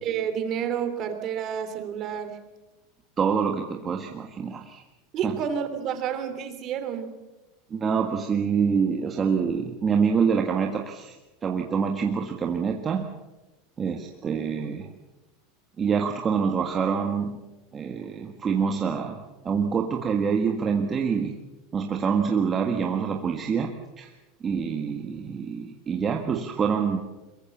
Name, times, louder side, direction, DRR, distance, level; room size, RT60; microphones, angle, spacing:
voice 1, 0.0-2.4 5.1-7.1, right 8 dB, 40° right, 8 dB, 3.3 m, -30 dB
voice 2, 3.2-4.8 5.2-5.4 7.7-11.2 11.4-13.1 13.8-14.9 15.8-17.4 17.7-21.4 21.7-24.1 24.4-27.0, right 6 dB, 25° right, 3 dB, 1.7 m, -26 dB
22.5 x 22.5 x 7.3 m, 1.1 s
supercardioid pair, 140°, 0 cm